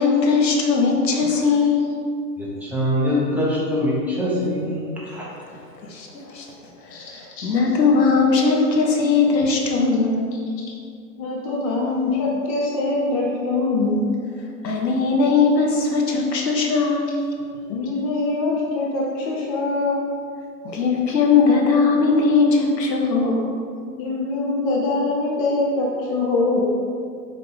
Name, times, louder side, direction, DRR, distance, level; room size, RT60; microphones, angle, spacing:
voice 1, 0.0-2.0 5.8-6.4 6.9-10.3 14.6-17.2 20.6-23.5, left 4 dB, 80° left, 0 dB, 1.5 m, -19 dB
voice 2, 2.4-5.2, left 1 dB, 5° right, -8 dB, 1.0 m, -23 dB
voice 3, 11.2-14.0 17.7-20.0 24.0-26.6, left 2 dB, 25° left, -3 dB, 0.5 m, -23 dB
5.3 x 4.9 x 5.0 m, 2.3 s
hypercardioid pair, 135°, 50 cm